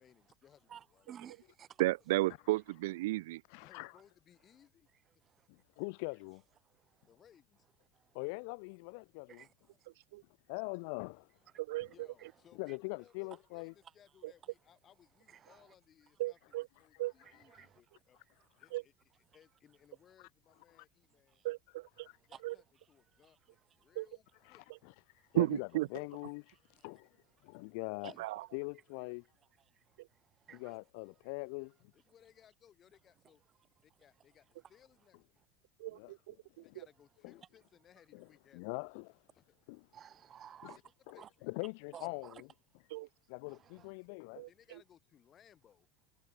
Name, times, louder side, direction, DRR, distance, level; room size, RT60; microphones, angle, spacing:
voice 1, 0.0-1.1 3.6-4.9 7.1-7.7 11.9-18.2 18.6-21.4 22.3-24.7 31.9-33.4 33.8-35.4 36.6-38.9 39.3-39.4 40.6-40.8 41.1-41.5 44.5-45.9, left 9 dB, 25° left, 5.7 m, -65 dB
voice 2, 0.7-1.8 5.2-5.6 6.6-7.1 7.9-8.2 9.3-9.9 11.5-12.4 12.7-12.8 13.3-13.4 15.3-15.7 17.1-17.8 18.4-18.7 21.1-21.5 22.0-22.4 23.1-24.0 25.2-25.4 26.5-28.3 29.4-30.8 31.0-31.3 39.9-41.3 41.9-42.4 43.5-43.9, right 9 dB, 25° right, 0.9 m, -57 dB
voice 3, 1.8-3.4 10.1-10.2 11.7-11.9 16.2-16.6 17.0-17.1 18.7-18.8 21.4-22.1 22.4-22.5 24.0-24.1 25.3-25.9 28.2-28.4 35.8-36.3 42.9-43.1 44.4-44.5, right 19 dB, 80° right, 0.3 m, -33 dB
voice 4, 3.5-3.9 5.5-6.4 8.1-9.4 10.5-11.3 12.6-13.7 25.3-26.5 26.8-27.1 27.4-28.1 28.5-29.2 30.6-31.7 35.9-36.1 36.6-36.7 37.2-37.3 38.1-38.2 38.5-39.1 39.7-39.8 40.6-40.7 41.1-42.3 43.3-44.5, left 33 dB, 65° left, 0.9 m, -42 dB
supercardioid pair, 155°, 0 cm